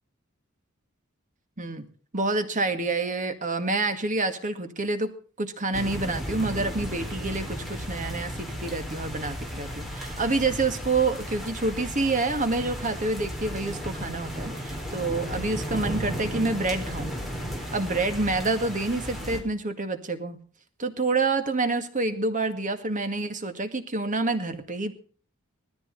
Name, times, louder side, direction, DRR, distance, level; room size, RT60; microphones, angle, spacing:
voice 1, 2.1-17.1 17.7-20.4 20.8-24.9, right 3 dB, 35° right, 8 dB, 1.9 m, -28 dB
sound 1, 5.7-19.4, equal, ahead, 4.0 m, -34 dB
19.5 x 14.0 x 4.0 m, 0.41 s
head